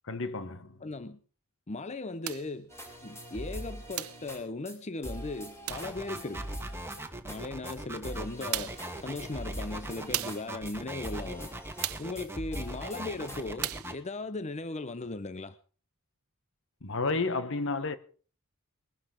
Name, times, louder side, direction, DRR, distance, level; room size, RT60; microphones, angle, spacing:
voice 1, 0.0-0.9 16.8-18.0, left 3 dB, 65° left, 1.4 m, -31 dB
voice 2, 0.8-1.2 1.7-2.7 3.0-6.5 7.2-11.5 12.0-15.6, left 2 dB, 30° left, 0.7 m, -38 dB
sound 1, 2.2-2.5 4.0-4.3 5.7-6.0 7.7-7.8 8.5-8.9 10.1-10.5 11.8-12.2 13.6-14.0, right 14 dB, 90° right, 0.9 m, -35 dB
sound 2, 2.7-4.4 4.7-4.8 5.0-7.4 7.7-7.8 8.0-10.8 11.0-11.9 12.2-13.4, equal, 15° left, 5.7 m, -42 dB
sound 3, 5.7-13.9, right 2 dB, 10° right, 2.0 m, -40 dB
21.0 x 12.0 x 5.1 m
head